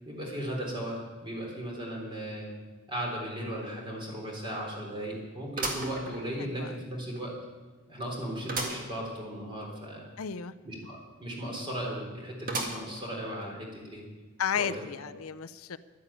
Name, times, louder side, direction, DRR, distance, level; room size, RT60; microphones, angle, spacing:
voice 1, 0.1-2.5 2.9-7.3 7.9-10.1 10.6-14.0 14.6-14.7, right 1 dB, 25° right, -1 dB, 3.7 m, -36 dB
sound 1, 3.3-3.4 3.9-4.0 5.6-6.7 7.2-7.3 8.5-8.9 9.3-9.4 9.6-9.7 12.5-13.1 13.7-13.8 14.8-14.9, right 2 dB, 40° right, 2.0 m, -35 dB
voice 2, 6.4-6.7 10.2-10.5 14.4-15.8, left 7 dB, 90° left, 12 dB, 0.6 m, -33 dB
11.5 x 11.0 x 8.7 m, 1.3 s
head